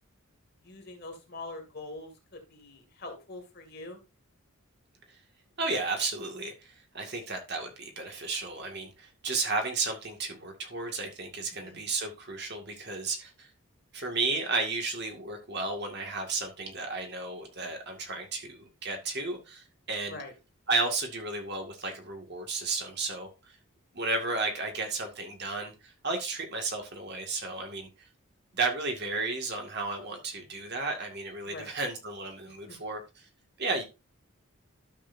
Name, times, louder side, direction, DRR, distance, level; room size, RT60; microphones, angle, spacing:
voice 1, 0.6-4.0 11.5-11.8 20.1-20.3 31.5-31.7 32.7-32.8, left 2 dB, 45° left, 3 dB, 2.4 m, -43 dB
voice 2, 5.6-13.5 13.9-20.2 20.7-23.3 23.9-27.9 28.5-33.3 33.6-33.8, right 3 dB, 50° right, 3 dB, 2.1 m, -33 dB
12.0 x 6.6 x 2.7 m, 0.28 s
head